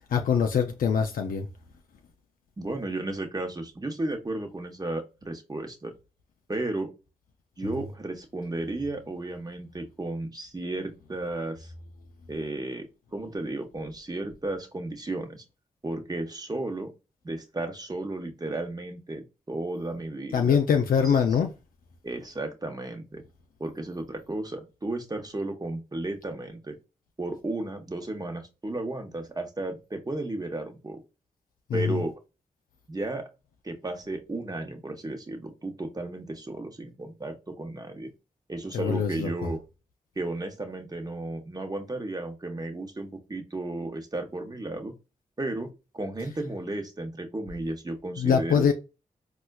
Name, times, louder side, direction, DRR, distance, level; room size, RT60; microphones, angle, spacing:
voice 1, 0.1-1.5 20.3-21.5 31.7-32.0 38.7-39.5 48.2-48.7, left 7 dB, 80° left, 0.4 m, -23 dB
voice 2, 2.6-5.9 6.5-6.9 7.6-11.7 12.3-15.4 15.8-16.9 17.2-20.6 21.0-21.2 22.0-23.2 23.6-26.8 27.2-31.0 31.7-32.1 32.9-33.3 33.6-38.1 38.5-39.6 40.2-44.9 45.4-48.7, right 2 dB, 25° right, 0.9 m, -34 dB
4.2 x 2.3 x 2.3 m
cardioid pair, 45°, 14 cm